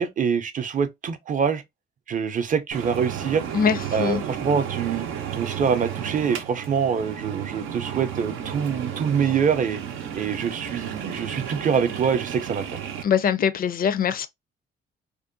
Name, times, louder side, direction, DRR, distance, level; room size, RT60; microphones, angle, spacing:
voice 1, 0.0-1.6 2.1-3.4 3.9-5.1 5.3-9.8 10.2-12.8, right 7 dB, 40° right, 0.5 m, -25 dB
sound 1, 2.7-13.0, right 9 dB, 90° right, 0.6 m, -33 dB
voice 2, 3.5-4.2 13.0-14.3, left 7 dB, 45° left, 0.4 m, -22 dB
2.6 x 2.2 x 2.4 m
cardioid pair, 90°, 20 cm